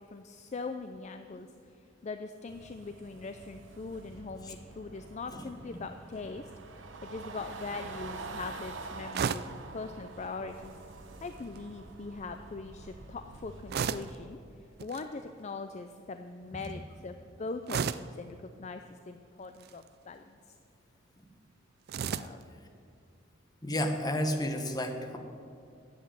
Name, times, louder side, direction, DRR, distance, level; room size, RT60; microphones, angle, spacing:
voice 1, 0.0-6.5 7.0-10.8 11.2-20.4 22.1-22.5, left 3 dB, 35° left, 7 dB, 0.4 m, -41 dB
sound 1, 2.5-14.1, right 3 dB, 80° right, 0.9 m, -46 dB
sound 2, 9.1-9.6 11.3-11.6 13.7-14.2 14.8-15.1 17.7-18.2 19.5-19.9 21.9-22.4, right 7 dB, 55° right, 0.4 m, -33 dB
voice 2, 23.6-25.2, equal, 20° left, 4 dB, 1.2 m, -31 dB
10.5 x 8.1 x 9.0 m, 2.4 s
head